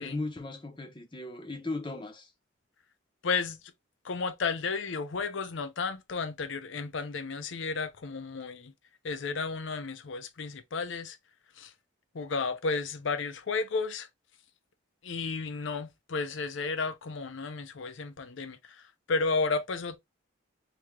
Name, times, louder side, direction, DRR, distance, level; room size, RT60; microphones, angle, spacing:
voice 1, 0.0-2.3, left 2 dB, 25° left, 0.7 m, -37 dB
voice 2, 3.2-3.6 4.0-8.7 9.0-11.2 11.6-11.7 12.1-14.1 15.0-20.0, left 4 dB, 60° left, 0.5 m, -33 dB
3.2 x 2.8 x 3.5 m
head